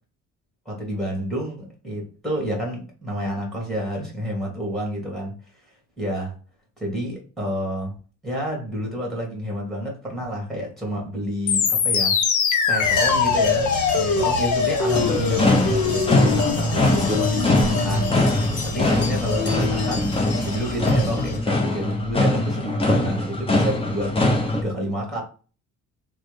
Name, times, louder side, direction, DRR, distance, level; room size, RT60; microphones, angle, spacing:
voice 1, 0.6-5.4 6.0-6.3 6.8-7.9 8.2-12.2 12.7-20.1 20.4-25.2, equal, ahead, 1.7 m, -29 dB
sound 1, 11.5-21.1, left 5 dB, 75° left, 0.7 m, -24 dB
sound 2, 12.8-21.4, left 2 dB, 55° left, 1.2 m, -29 dB
sound 3, 14.9-24.6, left 1 dB, 20° left, 0.8 m, -22 dB
3.2 x 2.2 x 3.2 m
cardioid pair, 90°, 30 cm